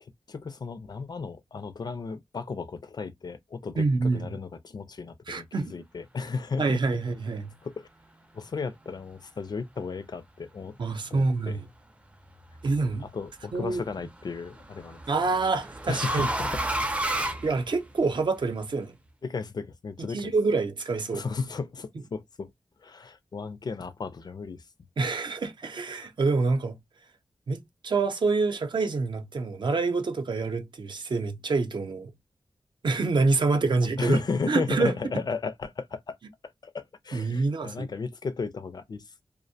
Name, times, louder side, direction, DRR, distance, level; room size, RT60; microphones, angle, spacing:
voice 1, 0.0-6.8 7.6-7.9 8.3-10.7 11.1-11.6 13.0-15.0 15.9-16.6 19.2-20.3 21.1-22.5 22.8-24.6 34.0-36.2 36.6-39.2, left 4 dB, 50° left, 0.4 m, -34 dB
voice 2, 3.8-4.3 5.3-5.7 6.6-7.5 10.8-11.6 12.6-13.0 13.5-13.8 15.1-16.3 17.4-18.9 20.1-21.2 25.0-26.8 27.5-32.1 32.8-34.2 34.5-34.9 37.1-37.9, right 3 dB, 60° right, 0.6 m, -26 dB
sound 1, 12.3-12.8 14.2-18.2, right 1 dB, 15° right, 0.5 m, -31 dB
2.4 x 2.0 x 2.6 m
wide cardioid pair, 105°, 9 cm